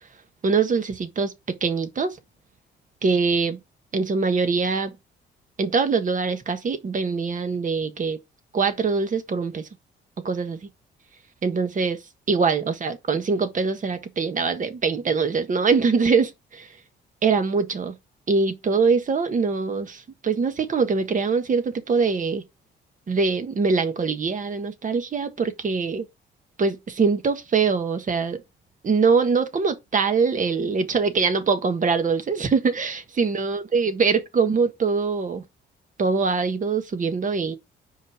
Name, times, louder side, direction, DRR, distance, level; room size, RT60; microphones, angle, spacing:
voice 1, 0.4-2.2 3.0-3.6 3.9-4.9 5.6-8.2 8.5-9.7 10.2-10.6 11.4-12.0 12.3-16.7 17.2-18.0 18.3-22.4 23.1-26.0 26.6-28.4 28.8-35.4 36.0-37.6, right 5 dB, 40° right, 1.4 m, -23 dB
5.5 x 5.1 x 4.7 m
cardioid pair, 90°, 20 cm